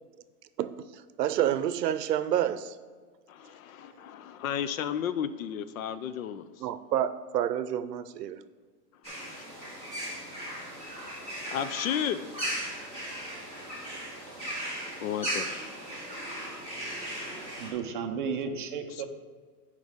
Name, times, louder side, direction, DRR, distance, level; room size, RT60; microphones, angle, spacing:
voice 1, 1.2-2.8 6.6-8.4, right 11 dB, 85° right, 14 dB, 0.7 m, -28 dB
voice 2, 3.3-6.4 11.5-12.2 15.0-15.5, left 9 dB, 60° left, 13 dB, 0.5 m, -32 dB
sound 1, 9.0-17.7, right 1 dB, 10° left, 1.6 m, -37 dB
voice 3, 17.6-19.0, right 6 dB, 35° right, 4 dB, 0.5 m, -33 dB
10.5 x 4.9 x 3.6 m, 1.5 s
supercardioid pair, 170°, 47 cm